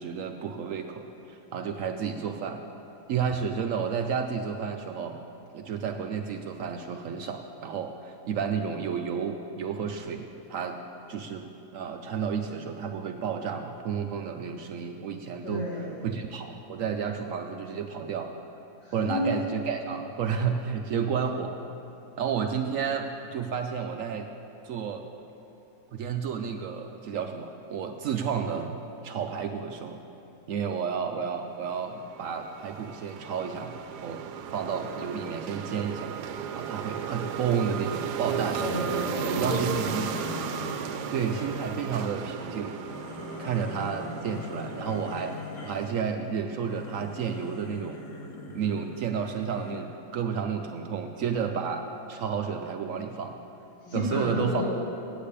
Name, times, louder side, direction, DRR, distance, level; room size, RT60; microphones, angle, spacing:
voice 1, 0.0-2.6 3.1-5.2 5.5-10.8 11.1-11.5 11.7-15.6 16.0-18.3 18.9-21.6 22.2-24.3 24.6-25.1 25.9-30.0 30.5-33.7 34.0-34.2 34.5-36.1 36.6-38.9 39.3-40.1 41.1-42.8 43.4-45.4 45.6-48.0 48.5-53.3 53.9-54.6, right 6 dB, 65° right, 5 dB, 0.8 m, -31 dB
voice 2, 15.4-16.1 18.8-19.4 38.6-40.1 53.8-54.6, left 1 dB, 85° left, -7 dB, 3.4 m, -31 dB
sound 1, 31.6-46.0, right 8 dB, 85° right, 1.2 m, -36 dB
sound 2, 39.7-49.7, left 3 dB, 15° right, 1.6 m, -49 dB
sound 3, 39.8-41.9 42.7-45.9 46.5-50.0, left 3 dB, 55° left, 1.2 m, -42 dB
8.3 x 8.1 x 8.4 m, 3.0 s
omnidirectional pair, 1.7 m